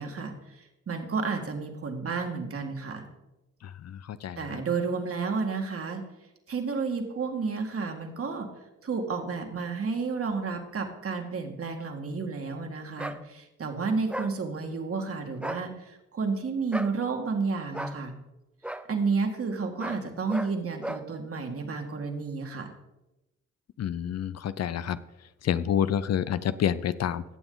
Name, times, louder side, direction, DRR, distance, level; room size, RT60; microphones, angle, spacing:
voice 1, 0.0-3.1 4.4-6.0 6.5-8.5 8.8-18.1 18.9-22.7, right 4 dB, 50° right, 4 dB, 2.0 m, -31 dB
voice 2, 3.8-4.4 23.8-25.0 25.4-27.2, left 9 dB, 60° left, 15 dB, 0.6 m, -28 dB
sound 1, 13.0-13.2 14.1-14.3 15.3-15.6 16.7-16.9 17.7-18.0 18.6-18.8 19.8-20.0 20.3-20.5 20.8-21.0, right 1 dB, 5° right, 0.7 m, -35 dB
16.5 x 7.0 x 4.0 m, 0.97 s
cardioid pair, 65°, 29 cm